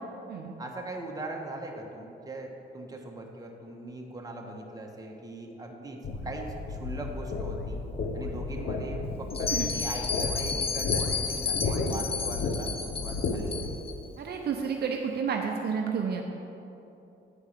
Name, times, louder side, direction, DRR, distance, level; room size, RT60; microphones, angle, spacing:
voice 1, 0.6-7.8 8.1-13.5, right 2 dB, 20° right, 0 dB, 1.2 m, -40 dB
sound 1, 6.0-13.7, left 3 dB, 60° left, 0.8 m, -33 dB
Bell, 9.3-13.9, left 6 dB, 30° left, 0.6 m, -32 dB
voice 2, 14.2-16.2, right 6 dB, 55° right, 2 dB, 0.7 m, -30 dB
8.8 x 4.6 x 6.6 m, 2.9 s
cardioid pair, 90°, 20 cm